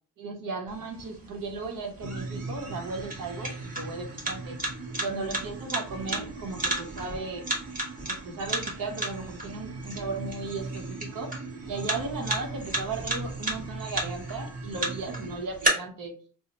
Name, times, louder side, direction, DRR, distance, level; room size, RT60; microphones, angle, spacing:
voice 1, 0.2-4.6 4.9-7.5 8.1-11.4 11.7-16.1, right 3 dB, 75° right, 3 dB, 0.8 m, -36 dB
sound 1, 0.7-15.7, right 2 dB, 25° right, 1.0 m, -35 dB
sound 2, 2.0-15.4, right 3 dB, 50° right, 0.6 m, -40 dB
2.7 x 2.0 x 4.0 m, 0.40 s
wide cardioid pair, 150°, 33 cm